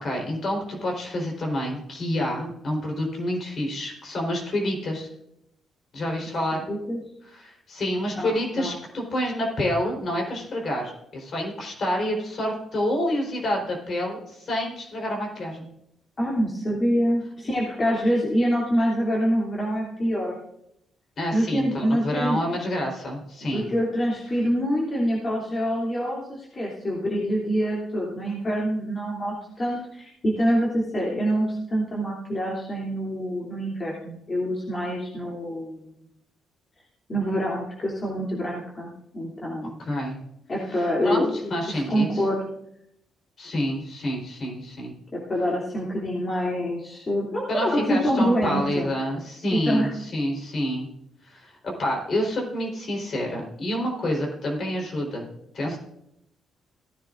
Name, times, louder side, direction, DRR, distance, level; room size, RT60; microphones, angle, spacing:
voice 1, 0.0-5.1 5.9-6.6 7.2-15.7 21.2-23.7 39.8-40.2 40.7-42.2 43.4-44.9 47.5-50.9 51.2-55.3 55.5-55.8, left 1 dB, 50° left, 0 dB, 4.1 m, -28 dB
voice 2, 6.7-7.0 8.1-8.7 16.2-20.3 21.3-22.4 23.5-35.9 37.1-39.8 40.5-42.4 45.1-48.9 49.5-49.9, equal, 30° left, -4 dB, 2.9 m, -26 dB
17.0 x 10.0 x 2.6 m, 0.78 s
cardioid pair, 90°, 0 cm